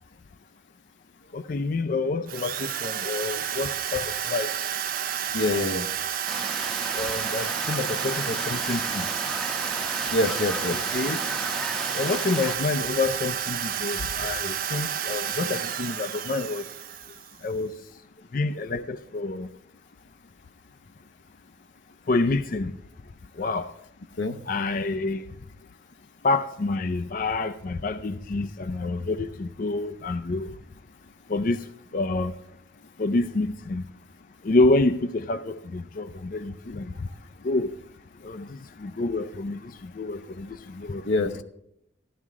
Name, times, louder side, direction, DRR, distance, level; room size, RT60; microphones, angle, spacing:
voice 1, 1.3-4.5 6.9-9.1 10.7-11.2 11.9-16.7 17.4-17.8 18.3-19.5 22.1-22.8 23.3-23.7 24.4-25.3 26.2-30.5 31.3-32.3 33.0-33.9 34.4-37.1 37.4-37.8 38.2-41.4, left 3 dB, 45° left, 9 dB, 0.5 m, -28 dB
Drill, 2.3-17.5, right 9 dB, 50° right, 0.6 m, -30 dB
voice 2, 5.3-5.9 10.1-10.8 24.2-24.4 41.1-41.4, left 2 dB, 85° left, 6 dB, 1.0 m, -25 dB
sound 1, 6.3-12.6, equal, ahead, 0.8 m, -35 dB
15.0 x 12.0 x 3.6 m, 0.77 s
head